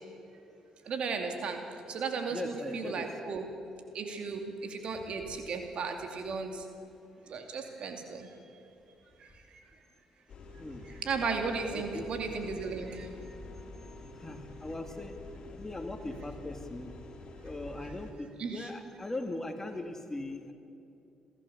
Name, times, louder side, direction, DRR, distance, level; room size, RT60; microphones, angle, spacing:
voice 1, 0.9-1.6 1.9-3.4 3.9-6.6 7.3-8.3 10.8-13.1 18.4-18.7, right 4 dB, 60° right, 4 dB, 2.6 m, -35 dB
voice 2, 2.3-3.0 10.6-10.8 11.7-12.1 14.2-15.1 15.5-16.9 17.4-20.5, left 2 dB, 20° left, 5 dB, 2.4 m, -39 dB
sound 1, 10.3-18.1, left 2 dB, 50° left, 2.9 m, -47 dB
27.5 x 13.5 x 7.0 m, 2.7 s
hypercardioid pair, 50°, 2 cm